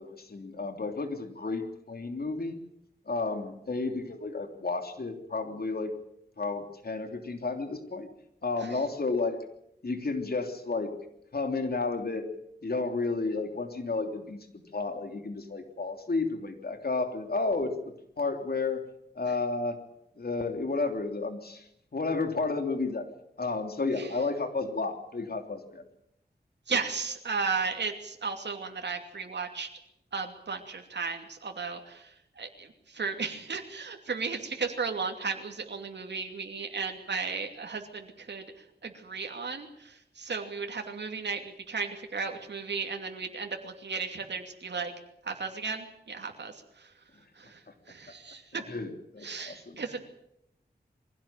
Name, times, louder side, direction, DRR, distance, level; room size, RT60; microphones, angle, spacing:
voice 1, 0.0-2.6 3.1-5.9 6.4-8.1 8.4-9.4 9.8-10.9 11.3-12.3 12.6-14.4 14.7-17.7 18.2-18.8 19.1-19.8 20.2-21.6 21.9-23.1 23.4-25.8 48.7-49.8, left 3 dB, 60° left, 6 dB, 3.3 m, -32 dB
voice 2, 26.7-29.7 30.1-44.9 45.2-46.9 47.3-48.6 49.2-50.0, right 5 dB, 90° right, 3 dB, 2.7 m, -35 dB
23.0 x 16.5 x 9.1 m, 0.78 s
wide cardioid pair, 70°, 18 cm